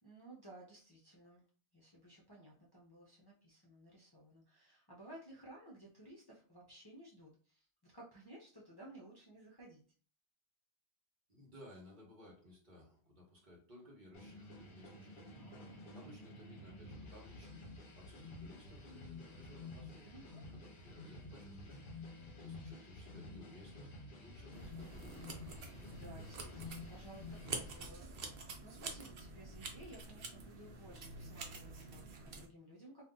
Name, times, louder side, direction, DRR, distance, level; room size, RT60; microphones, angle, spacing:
voice 1, 0.0-1.4 1.7-9.8 15.3-15.9 20.0-20.4 25.9-33.0, right 1 dB, 30° left, -5 dB, 0.5 m, -57 dB
voice 2, 11.3-15.3 15.9-17.6 17.9-20.1 20.5-22.0 22.4-25.6, left 1 dB, 45° right, -2 dB, 1.1 m, -59 dB
sound 1, 14.1-27.8, left 2 dB, 55° left, 0.8 m, -51 dB
sound 2, 24.5-32.5, right 3 dB, 60° right, 0.8 m, -48 dB
2.6 x 2.4 x 3.6 m, 0.42 s
omnidirectional pair, 1.1 m